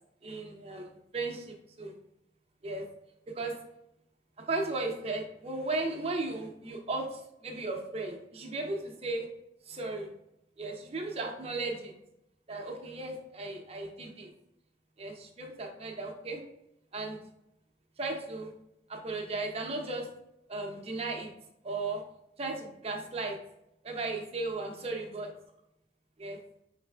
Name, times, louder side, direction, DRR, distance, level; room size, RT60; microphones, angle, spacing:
voice 1, 0.2-0.9 1.1-1.9 2.6-2.8 3.3-3.5 4.4-9.3 9.7-10.1 10.6-11.9 12.5-14.3 15.0-16.4 16.9-17.2 18.0-18.5 18.9-20.1 20.5-21.3 21.6-22.0 22.4-23.4 23.8-25.3 26.2-26.4, right 2 dB, 35° right, 2 dB, 0.6 m, -35 dB
5.2 x 3.2 x 2.3 m, 0.83 s
head